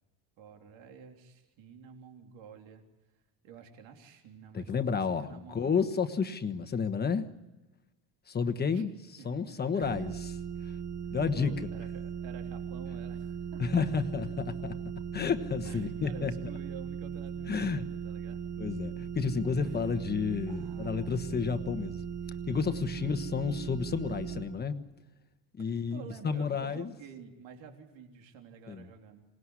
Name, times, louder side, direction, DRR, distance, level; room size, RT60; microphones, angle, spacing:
voice 1, 0.4-2.8 3.4-5.6 8.7-8.9 9.2-9.3 9.7-10.1 11.4-14.1 15.6-18.4 19.6-20.1 20.5-21.2 22.9-23.2 25.6-29.2, right 6 dB, 80° right, 3 dB, 3.5 m, -50 dB
voice 2, 4.5-7.3 8.3-10.4 10.6-10.7 11.1-11.5 13.6-14.8 15.1-16.3 17.5-17.9 18.6-22.0 22.5-24.8 25.6-26.9 28.7-28.9, left 5 dB, 20° left, 9 dB, 1.3 m, -31 dB
sound 1, 9.8-24.4, right 7 dB, 60° right, 5.7 m, -38 dB
27.0 x 19.0 x 9.8 m, 1.1 s
cardioid pair, 175°, 45 cm